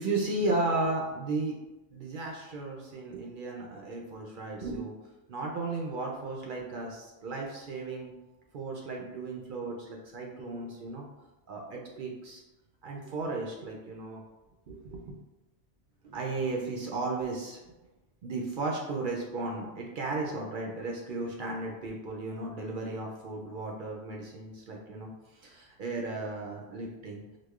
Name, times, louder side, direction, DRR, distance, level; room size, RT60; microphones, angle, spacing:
voice 1, 0.0-1.6 1.9-4.9 5.3-8.1 8.5-11.1 11.5-12.4 12.8-14.2 14.7-15.2 16.0-17.6 18.2-27.2, right 2 dB, 60° right, -1 dB, 0.5 m, -35 dB
4.8 x 2.1 x 2.3 m, 1.1 s
omnidirectional pair, 1.2 m